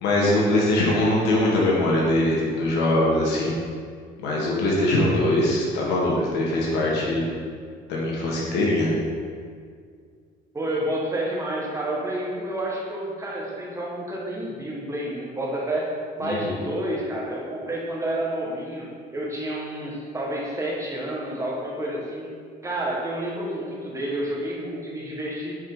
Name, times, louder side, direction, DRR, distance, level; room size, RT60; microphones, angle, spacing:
voice 1, 0.0-3.5 4.2-7.2 7.9-8.9 16.2-16.6, left 1 dB, 90° left, -4 dB, 1.7 m, -22 dB
voice 2, 10.5-18.9 19.1-22.3 22.6-25.6, right 1 dB, 15° right, -4 dB, 1.6 m, -29 dB
7.9 x 4.9 x 4.0 m, 2.1 s
cardioid pair, 110°, 17 cm